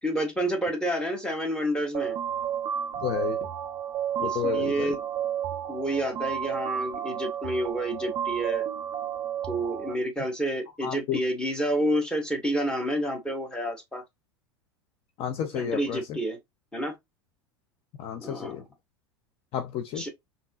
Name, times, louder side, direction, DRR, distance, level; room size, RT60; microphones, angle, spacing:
voice 1, 0.0-2.2 4.2-5.0 5.7-8.7 9.5-14.0 15.5-16.4 16.7-16.9 18.2-18.6 20.0-20.1, right 1 dB, 5° left, 1.6 m, -29 dB
sound 1, 1.9-9.9, right 9 dB, 40° right, 0.5 m, -31 dB
voice 2, 3.0-3.5 4.2-5.0 10.8-11.2 15.2-16.0 18.0-18.6 19.5-20.0, left 9 dB, 45° left, 0.6 m, -31 dB
5.2 x 2.8 x 2.4 m
hypercardioid pair, 85°, 14 cm